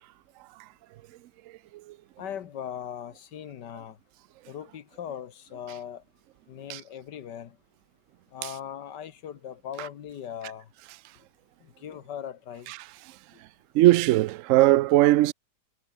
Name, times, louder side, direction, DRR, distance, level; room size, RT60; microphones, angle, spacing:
voice 1, 2.2-4.0 4.5-6.0 6.5-7.6 8.3-10.7 11.6-12.7 13.3-13.4, left 9 dB, 85° left, 1.8 m, -39 dB
voice 2, 13.7-15.3, right 16 dB, 70° right, 0.7 m, -19 dB
omnidirectional pair, 1.8 m